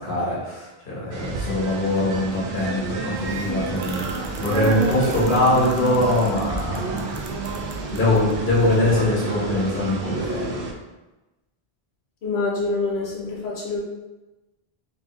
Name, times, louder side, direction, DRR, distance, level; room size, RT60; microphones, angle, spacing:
voice 1, 0.0-7.1 7.9-10.6, left 1 dB, 55° left, -6 dB, 1.5 m, -22 dB
sound 1, 1.1-10.7, right 3 dB, 70° right, 0.8 m, -30 dB
sound 2, 3.0-9.1, right 2 dB, 45° right, 0.3 m, -35 dB
voice 2, 12.2-13.8, left 3 dB, 80° left, -4 dB, 1.2 m, -26 dB
3.5 x 3.3 x 3.2 m, 1.1 s
omnidirectional pair, 1.1 m